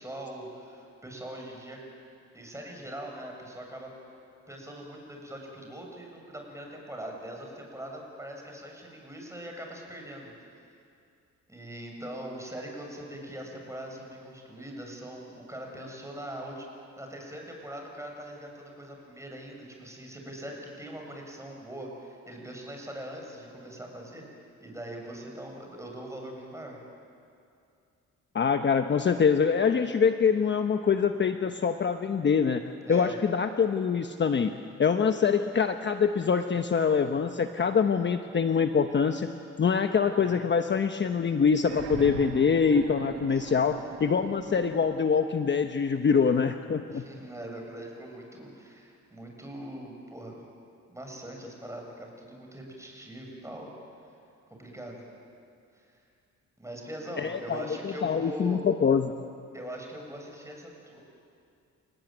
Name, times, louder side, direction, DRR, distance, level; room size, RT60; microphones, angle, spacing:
voice 1, 0.0-1.8 2.3-3.9 4.5-10.3 11.5-26.8 32.8-33.2 42.0-42.4 43.3-43.7 46.9-50.4 50.9-53.7 54.5-55.1 55.7-56.0 56.6-58.6 59.5-61.0, right 1 dB, 10° right, 1 dB, 7.3 m, -42 dB
voice 2, 28.3-32.6 32.9-34.5 34.8-39.3 39.6-47.0 57.2-59.1, left 6 dB, 40° left, 7 dB, 1.1 m, -25 dB
sound 1, 41.6-45.4 46.6-46.7, right 7 dB, 55° right, 1.6 m, -41 dB
29.5 x 19.0 x 9.1 m, 2.5 s
cardioid pair, 90°, 30 cm